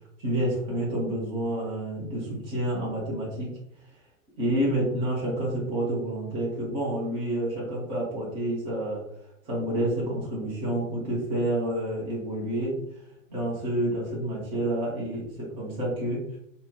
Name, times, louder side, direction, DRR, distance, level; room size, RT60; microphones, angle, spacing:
voice 1, 0.2-3.5 4.4-9.0 9.5-12.8 13.3-16.4, right 1 dB, 10° right, -6 dB, 0.6 m, -29 dB
2.8 x 2.0 x 3.6 m, 0.77 s
supercardioid pair, 170°, 39 cm